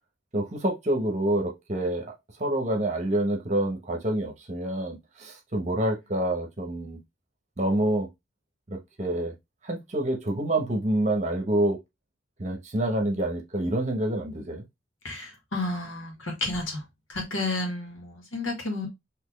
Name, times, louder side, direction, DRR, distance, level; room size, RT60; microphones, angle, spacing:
voice 1, 0.3-2.1 2.4-7.0 7.6-8.1 8.7-9.3 9.6-11.8 12.4-14.6, right 1 dB, 35° right, 0.9 m, -27 dB
voice 2, 15.0-16.8 17.1-18.9, left 2 dB, 80° left, 1.7 m, -31 dB
4.1 x 3.0 x 3.1 m
head